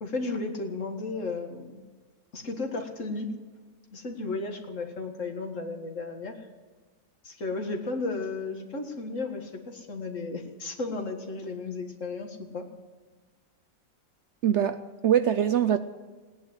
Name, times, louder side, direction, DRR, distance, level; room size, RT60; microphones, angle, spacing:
voice 1, 0.0-1.8 2.3-3.3 3.9-6.5 7.2-12.7, left 3 dB, 55° left, 4 dB, 2.1 m, -34 dB
voice 2, 14.4-15.8, right 9 dB, 60° right, 11 dB, 0.8 m, -23 dB
17.5 x 10.0 x 8.0 m, 1.4 s
omnidirectional pair, 1.6 m